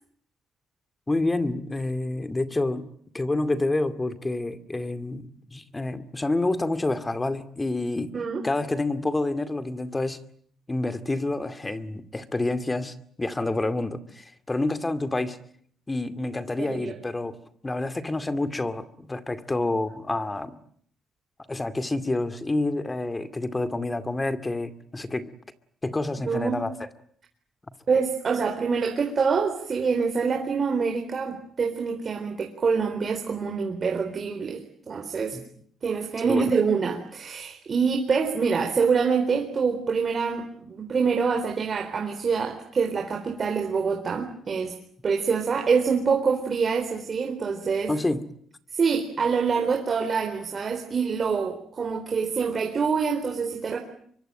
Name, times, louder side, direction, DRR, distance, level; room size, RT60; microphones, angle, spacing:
voice 1, 1.1-2.9 3.1-5.2 5.5-8.1 8.4-10.2 10.7-15.4 15.9-17.4 17.6-20.6 21.5-25.3 25.8-26.7 35.3-35.4 36.3-36.5 47.9-48.2, left 2 dB, 20° left, 11 dB, 2.3 m, -28 dB
voice 2, 26.2-26.6 27.9-35.4 35.8-44.7 45.0-47.9 48.7-53.8, right 5 dB, 45° right, 3 dB, 4.1 m, -25 dB
25.0 x 24.0 x 9.0 m, 0.63 s
cardioid pair, 90°, 0 cm